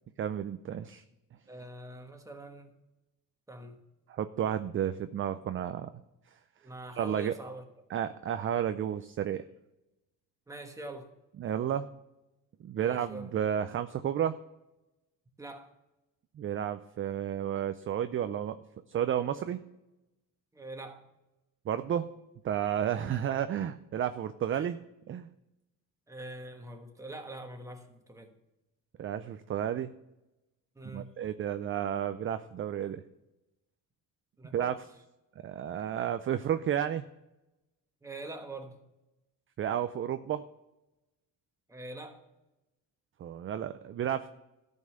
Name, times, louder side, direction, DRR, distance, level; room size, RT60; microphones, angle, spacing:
voice 1, 0.2-1.0 4.1-5.9 7.0-7.3 7.9-9.4 11.4-11.9 12.6-14.4 16.4-18.6 18.9-19.6 21.7-22.1 22.4-24.8 25.1-25.3 29.0-29.9 30.8-33.0 34.5-34.7 35.4-37.1 39.6-40.4 43.2-44.3, right 10 dB, 40° right, 11 dB, 0.4 m, -32 dB
voice 2, 1.5-2.7 3.5-3.8 6.6-7.6 10.5-11.1 12.8-13.3 15.4-15.7 20.5-21.0 23.0-23.1 24.5-24.7 26.1-28.3 30.7-31.1 34.4-34.7 38.0-38.8 41.7-42.2, right 1 dB, 10° right, 4 dB, 1.3 m, -44 dB
13.0 x 5.4 x 6.6 m, 0.96 s
cardioid pair, 140°, 34 cm